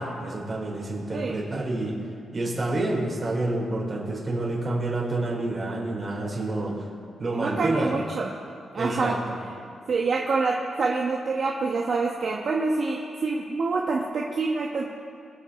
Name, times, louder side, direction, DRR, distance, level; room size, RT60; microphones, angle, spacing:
voice 1, 0.0-1.9 2.3-6.7 7.2-7.9 8.8-9.2, right 2 dB, 35° right, -3 dB, 4.1 m, -28 dB
voice 2, 7.3-8.3 8.7-9.1 9.9-14.9, right 3 dB, 55° right, -2 dB, 1.2 m, -26 dB
24.5 x 8.4 x 4.2 m, 2.4 s
cardioid pair, 110°, 0 cm